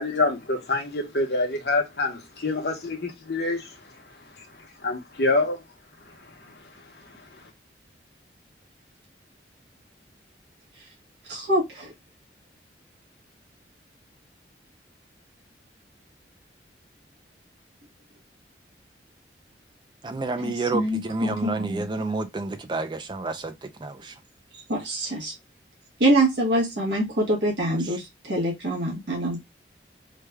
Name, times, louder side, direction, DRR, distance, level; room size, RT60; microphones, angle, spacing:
voice 1, 0.0-3.8 4.8-5.6 6.4-6.5, left 2 dB, 60° left, 0.9 m, -26 dB
voice 2, 11.2-11.9 20.4-21.9 24.7-25.3 26.0-29.4, right 1 dB, 80° right, 1.2 m, -25 dB
voice 3, 20.0-24.2 27.8-28.0, right 3 dB, 25° right, 0.4 m, -30 dB
3.3 x 2.2 x 3.3 m
head